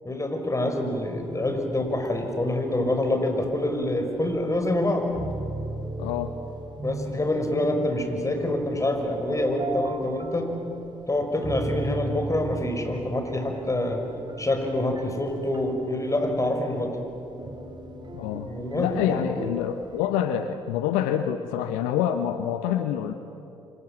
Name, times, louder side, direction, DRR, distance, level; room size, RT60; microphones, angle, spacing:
voice 1, 0.0-5.1 6.8-10.5 11.1-14.0 14.4-16.9 18.4-19.2, left 1 dB, 20° left, 4 dB, 5.9 m, -26 dB
sound 1, 0.7-20.1, right 2 dB, 30° right, 3.4 m, -37 dB
voice 2, 6.0-6.3 18.1-18.5 18.7-23.1, left 10 dB, 75° left, 9 dB, 1.0 m, -26 dB
29.5 x 26.0 x 7.5 m, 3.0 s
figure-of-eight pair, 45°, 14 cm